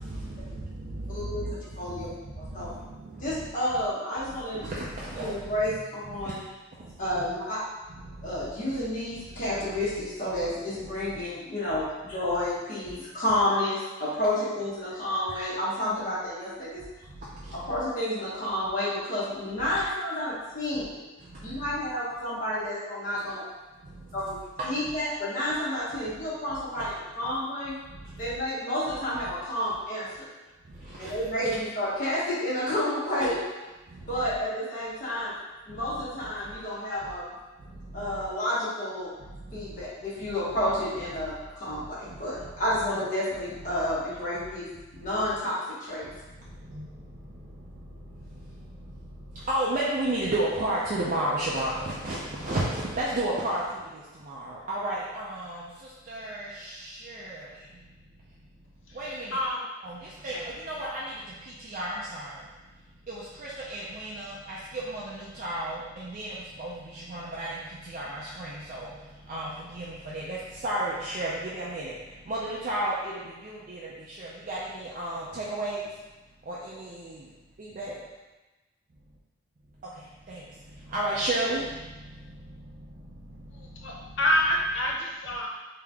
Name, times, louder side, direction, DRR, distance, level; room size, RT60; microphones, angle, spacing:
voice 1, 0.6-1.0 4.6-5.3 7.2-7.3 31.0-31.1 46.7-46.9 49.5-53.6 54.3-55.6 56.1-56.7 57.1-57.4 59.0-59.4 59.8-60.0 60.2-60.3 60.6-61.0 61.6-62.3 63.1-66.7 67.1-67.5 67.9-68.9 69.3-70.4 70.6-71.9 72.3-73.1 73.4-73.8 74.2-75.8 76.5-77.2 77.6-77.9 80.3-80.4 80.9-81.6, right 1 dB, 40° right, -6 dB, 0.5 m, -31 dB
voice 2, 1.1-1.5 1.8-2.1 2.4-2.7 3.2-4.6 5.1-6.4 7.0-7.6 8.2-16.8 17.7-21.0 21.4-23.4 24.1-27.8 28.2-30.3 31.0-33.4 34.0-35.3 35.7-37.2 37.9-39.1 39.5-44.7 45.0-46.1, left 1 dB, 40° left, -9 dB, 1.1 m, -30 dB
voice 3, 59.3-59.7 60.3-60.4 60.8-60.9 83.5-85.5, left 1 dB, 70° left, -2 dB, 0.8 m, -27 dB
3.6 x 2.8 x 3.4 m, 1.1 s
head